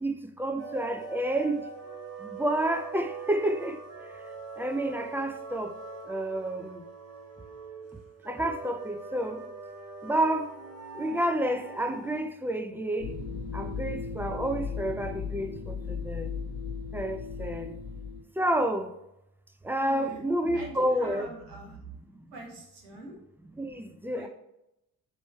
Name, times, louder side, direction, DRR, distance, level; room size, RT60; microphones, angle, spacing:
voice 1, 0.0-1.6 2.2-3.8 4.6-5.7 6.0-6.8 8.3-9.4 10.0-10.5 10.9-13.1 13.5-16.3 16.9-17.7 18.4-18.9 19.6-21.3 23.6-24.3, right 1 dB, 5° right, 0.6 m, -29 dB
sound 1, 0.6-12.2, right 4 dB, 35° right, 1.4 m, -43 dB
sound 2, 13.0-18.2, left 5 dB, 85° left, 1.4 m, -36 dB
voice 2, 19.8-20.2 20.5-21.8 22.3-23.2 24.1-24.3, right 2 dB, 75° right, 1.4 m, -43 dB
7.5 x 3.1 x 4.5 m
figure-of-eight pair, 40°, 47 cm